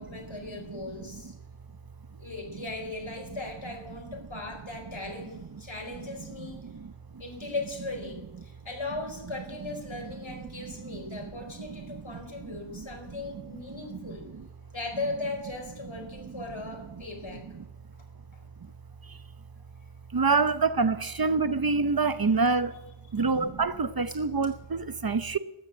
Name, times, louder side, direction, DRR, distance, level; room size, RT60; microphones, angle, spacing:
voice 1, 0.0-1.3 2.2-6.8 7.2-14.3 14.7-17.4 23.2-23.5, left 2 dB, 70° left, 4.5 m, -38 dB
voice 2, 20.1-22.7 23.1-25.4, right 4 dB, 45° right, 0.8 m, -25 dB
13.5 x 11.5 x 8.8 m
wide cardioid pair, 50°, 48 cm